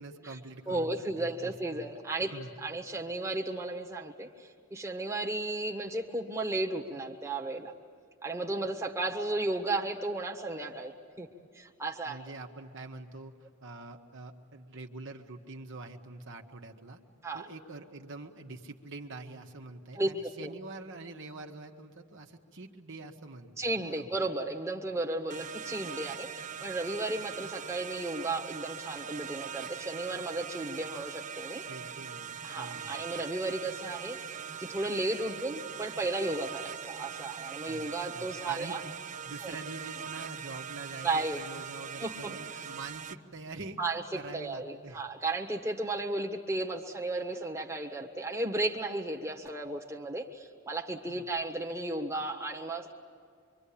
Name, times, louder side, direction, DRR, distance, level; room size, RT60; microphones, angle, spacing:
voice 1, 0.0-1.9 2.3-2.5 12.0-17.0 17.3-24.1 31.7-33.0 37.6-37.9 38.1-43.8 44.1-45.0 51.1-51.2, right 3 dB, 60° right, 2 dB, 1.4 m, -45 dB
voice 2, 0.7-2.3 2.6-7.7 8.2-11.3 11.5-12.2 17.2-17.4 19.9-20.1 20.4-20.5 23.6-31.6 32.4-34.2 34.6-38.8 39.4-39.5 41.0-41.4 42.0-42.1 42.5-42.6 43.8-52.9, right 2 dB, 15° right, 0 dB, 1.4 m, -34 dB
sound 1, 25.3-43.1, right 8 dB, 35° right, 0.6 m, -41 dB
25.5 x 24.5 x 8.7 m, 2.2 s
head